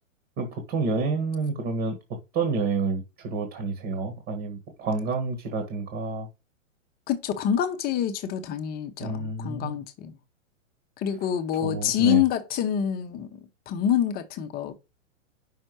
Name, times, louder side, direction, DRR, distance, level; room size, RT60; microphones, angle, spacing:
voice 1, 0.4-2.0 2.3-6.3 9.0-9.8 11.5-12.2, right 4 dB, 30° right, 1.6 m, -29 dB
voice 2, 7.1-10.2 11.0-13.4 13.7-14.7, left 10 dB, 25° left, 0.9 m, -26 dB
5.7 x 4.3 x 6.1 m
hypercardioid pair, 130°, 39 cm